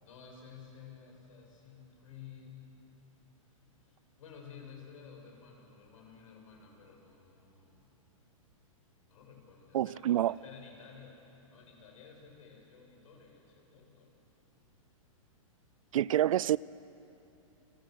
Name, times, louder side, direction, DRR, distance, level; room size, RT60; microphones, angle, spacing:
voice 1, 0.0-2.6 3.8-7.9 9.1-14.1, left 6 dB, 70° left, 7.7 m, -53 dB
voice 2, 9.7-10.4 15.9-16.6, right 12 dB, 70° right, 0.5 m, -27 dB
30.0 x 23.0 x 6.4 m
hypercardioid pair, 155°, 18 cm